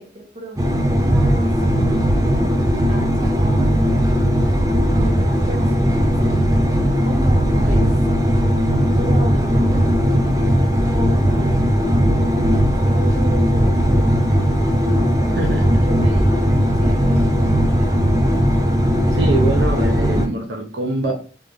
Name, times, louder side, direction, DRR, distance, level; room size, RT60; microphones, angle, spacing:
voice 1, 0.0-2.2 2.9-4.1 5.0-7.9 8.7-10.2 10.9-14.4 15.2-15.4 15.9-18.0, right 1 dB, 35° right, 1.1 m, -35 dB
sound 1, 0.6-20.3, equal, 20° right, 0.6 m, -17 dB
voice 2, 19.1-21.1, right 2 dB, 75° right, 0.9 m, -23 dB
3.8 x 3.6 x 3.4 m
head